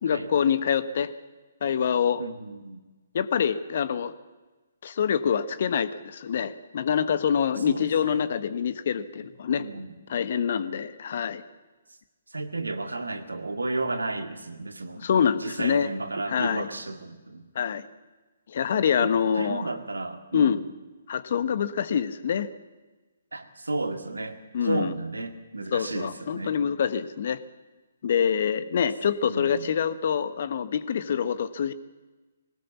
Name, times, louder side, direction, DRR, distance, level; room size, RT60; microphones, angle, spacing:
voice 1, 0.0-1.1 1.6-2.2 3.1-4.1 4.8-9.6 10.1-11.4 15.0-15.9 16.3-16.7 17.5-17.8 18.5-19.6 20.3-20.6 21.1-22.5 24.5-24.9 25.7-27.4 28.0-31.7, left 7 dB, 50° left, 14 dB, 1.2 m, -25 dB
voice 2, 2.2-2.8 7.6-8.2 9.5-9.9 12.3-15.1 15.4-17.5 19.0-20.6 23.3-26.6 29.3-29.7, right 2 dB, 80° right, 8 dB, 2.0 m, -33 dB
21.0 x 18.5 x 7.2 m, 1.2 s
figure-of-eight pair, 130°, 0 cm